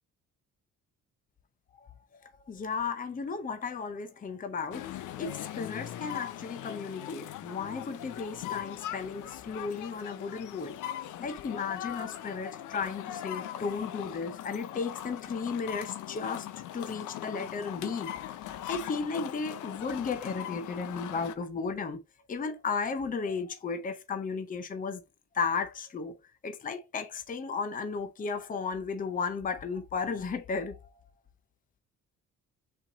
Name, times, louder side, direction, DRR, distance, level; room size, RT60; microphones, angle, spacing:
voice 1, 2.2-10.7 11.2-16.5 16.7-22.0 22.3-25.0 25.3-26.2 26.4-31.0, left 5 dB, 30° left, 0.6 m, -34 dB
sound 1, 4.7-21.3, left 12 dB, 80° left, 0.6 m, -40 dB
4.3 x 3.0 x 3.8 m
cardioid pair, 90°, 30 cm